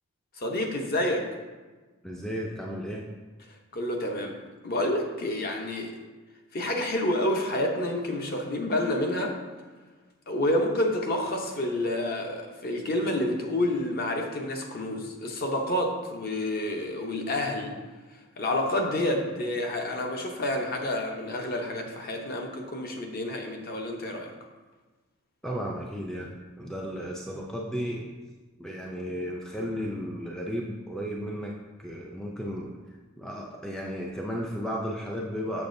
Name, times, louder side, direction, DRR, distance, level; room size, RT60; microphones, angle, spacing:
voice 1, 0.4-1.3 3.7-4.3 4.6-5.9 6.5-9.4 10.3-17.7 18.4-24.3, left 1 dB, 40° left, 2 dB, 0.8 m, -29 dB
voice 2, 2.0-3.1 25.4-28.1 28.6-31.5 31.8-32.7 33.2-35.7, equal, 5° left, -2 dB, 0.4 m, -34 dB
6.8 x 6.4 x 2.6 m, 1.3 s
head